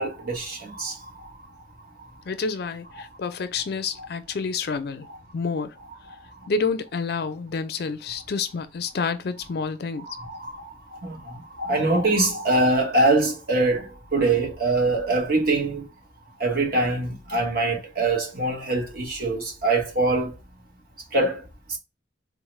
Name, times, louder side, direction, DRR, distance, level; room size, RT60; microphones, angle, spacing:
voice 1, 0.0-1.4 4.0-4.1 10.0-15.9 16.4-20.3 21.1-21.8, right 2 dB, 55° right, 1.1 m, -24 dB
voice 2, 2.3-5.1 5.3-5.7 6.5-10.1, left 4 dB, 60° left, 0.4 m, -28 dB
3.8 x 2.0 x 3.1 m
head